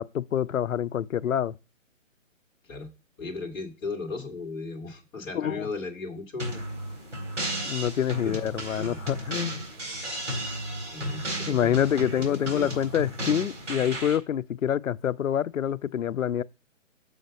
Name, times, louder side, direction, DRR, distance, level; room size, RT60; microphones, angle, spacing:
voice 1, 0.0-1.5 5.3-5.7 7.6-9.7 11.5-16.4, left 9 dB, 85° left, 0.6 m, -26 dB
voice 2, 3.2-6.6 8.2-8.3 8.8-9.0 10.9-11.8 12.1-12.7, left 3 dB, 5° left, 0.6 m, -36 dB
sound 1, 6.4-14.2, right 1 dB, 65° right, 4.1 m, -34 dB
6.5 x 5.1 x 5.2 m
hypercardioid pair, 150°, 39 cm